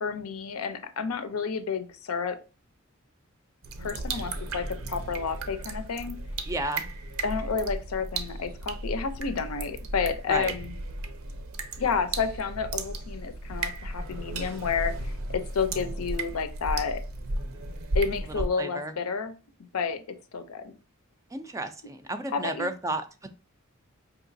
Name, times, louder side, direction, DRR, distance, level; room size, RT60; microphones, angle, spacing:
voice 1, 0.0-2.4 3.8-6.2 7.2-10.7 11.8-17.0 17.9-19.3 19.7-20.0 20.3-20.7 22.3-22.7, left 5 dB, 80° left, 9 dB, 0.5 m, -30 dB
sound 1, 3.6-18.5, right 2 dB, 70° right, 0.6 m, -34 dB
voice 2, 6.5-6.9 10.3-10.5 18.3-18.9 21.3-23.0, right 2 dB, 15° right, 8 dB, 0.3 m, -32 dB
4.6 x 2.9 x 2.6 m, 0.33 s
head